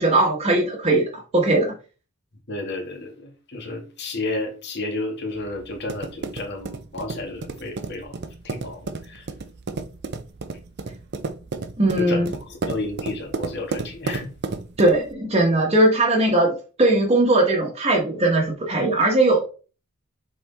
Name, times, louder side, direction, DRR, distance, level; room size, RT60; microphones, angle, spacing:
voice 1, 0.0-1.7 11.8-12.3 14.8-19.4, right 2 dB, 30° right, 1.2 m, -19 dB
voice 2, 2.5-8.1 8.4-9.2 12.0-14.3, left 2 dB, 50° left, 1.9 m, -32 dB
sound 1, 5.3-15.1, right 3 dB, 50° right, 0.6 m, -33 dB
7.5 x 4.1 x 3.5 m
head